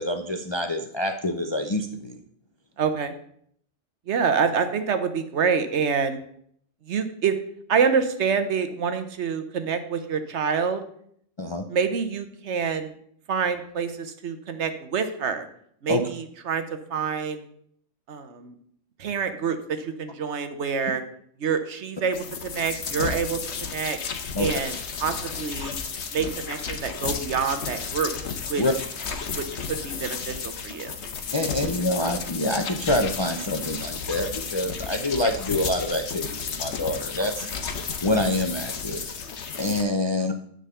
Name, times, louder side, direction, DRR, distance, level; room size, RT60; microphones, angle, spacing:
voice 1, 0.0-2.2 11.4-11.6 15.9-16.0 24.3-24.5 28.6-28.7 31.3-37.5 38.0-39.0 39.6-40.3, left 1 dB, 35° left, 5 dB, 0.4 m, -26 dB
voice 2, 2.8-3.1 4.1-6.2 6.9-7.3 7.7-10.8 11.7-12.9 13.3-15.5 15.8-16.6 16.9-17.5 18.1-18.6 19.0-21.0 21.4-23.4 23.7-24.0 24.4-25.8 26.1-28.2 28.5-28.6 29.3-30.9, right 6 dB, 70° right, 9 dB, 1.2 m, -26 dB
sound 1, 22.1-39.8, left 6 dB, 70° left, 1.2 m, -33 dB
10.0 x 3.9 x 6.8 m, 0.66 s
omnidirectional pair, 1.2 m